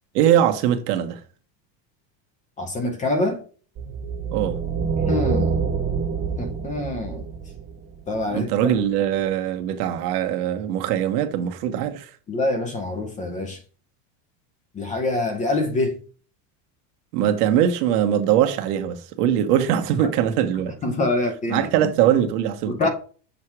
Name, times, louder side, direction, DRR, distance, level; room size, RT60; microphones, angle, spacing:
voice 1, 0.1-1.2 4.3-4.6 8.3-12.1 17.1-20.7 21.5-22.9, right 10 dB, 75° right, 1.3 m, -21 dB
voice 2, 2.6-3.4 5.1-5.6 6.4-7.3 8.1-8.5 12.3-13.6 14.7-16.0 20.0-20.1 20.8-21.7 22.7-22.9, left 2 dB, 15° left, 0.6 m, -25 dB
sound 1, 3.7-8.2, right 5 dB, 25° right, 1.7 m, -26 dB
7.4 x 2.9 x 4.7 m
cardioid pair, 175°, 47 cm